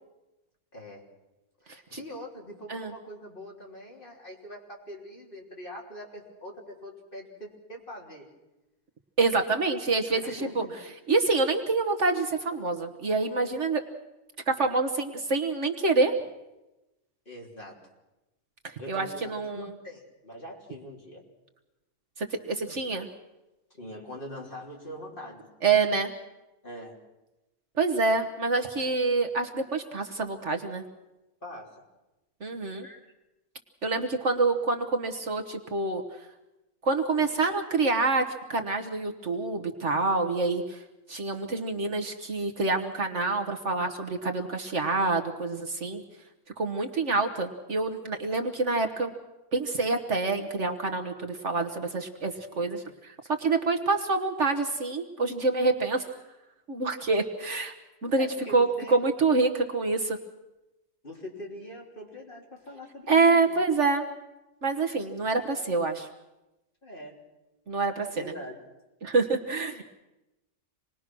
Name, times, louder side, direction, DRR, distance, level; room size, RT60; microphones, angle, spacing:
voice 1, 0.7-1.0 1.7-8.3 10.2-10.8 17.3-17.8 18.8-21.2 23.7-25.5 26.6-27.0 31.4-31.8 32.8-33.0 58.2-59.0 61.0-63.6 66.8-67.2 68.1-68.6, equal, 35° left, -1 dB, 3.7 m, -43 dB
voice 2, 9.2-10.6 11.1-13.8 14.5-16.1 18.9-19.7 22.2-23.1 25.6-26.1 27.8-30.8 32.4-32.9 33.8-36.0 36.8-38.2 38.5-40.8 41.1-46.0 46.6-49.1 49.5-53.1 53.4-56.0 56.7-57.7 58.0-58.3 58.5-60.2 63.1-64.1 64.6-66.1 67.7-68.3 69.0-69.8, right 3 dB, 55° right, 4 dB, 1.5 m, -26 dB
27.0 x 20.0 x 6.1 m, 1.0 s
omnidirectional pair, 1.6 m